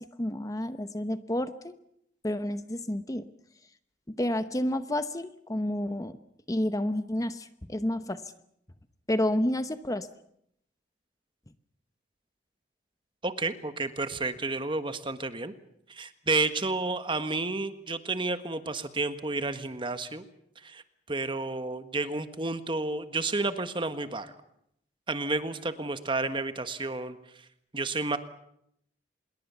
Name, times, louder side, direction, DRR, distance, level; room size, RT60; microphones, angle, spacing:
voice 1, 0.0-1.7 2.2-3.3 4.1-6.2 6.5-8.2 9.1-10.1, left 1 dB, 20° left, 11 dB, 0.9 m, -30 dB
voice 2, 13.2-15.5 15.9-20.2 20.6-20.8 21.1-24.3 25.1-27.2 27.7-28.2, right 3 dB, 30° right, 10 dB, 1.5 m, -31 dB
26.0 x 22.0 x 7.0 m, 0.73 s
head